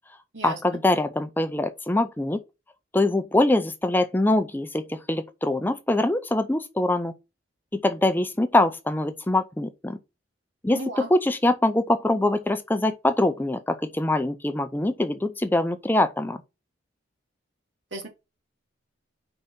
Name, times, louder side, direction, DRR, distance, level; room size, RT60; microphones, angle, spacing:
voice 1, 0.4-2.4 2.9-7.1 7.7-10.0 10.6-16.4, left 1 dB, 10° left, 0.5 m, -23 dB
voice 2, 10.7-11.1 17.9-18.1, right 2 dB, 80° right, 2.7 m, -33 dB
5.2 x 4.0 x 5.8 m
head